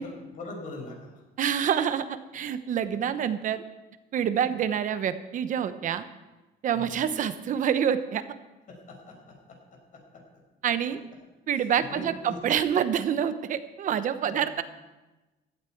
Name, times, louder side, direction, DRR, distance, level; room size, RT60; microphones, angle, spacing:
voice 1, 0.0-1.2 4.4-4.6 6.7-7.0 8.7-10.2 11.6-12.4 14.2-14.5, left 2 dB, 45° left, 0 dB, 5.8 m, -43 dB
voice 2, 1.4-2.0 2.3-3.6 4.1-6.0 6.6-8.2 10.6-11.0 11.5-14.6, right 8 dB, 45° right, 11 dB, 1.0 m, -27 dB
16.5 x 13.5 x 4.6 m, 1.1 s
cardioid pair, 150°, 19 cm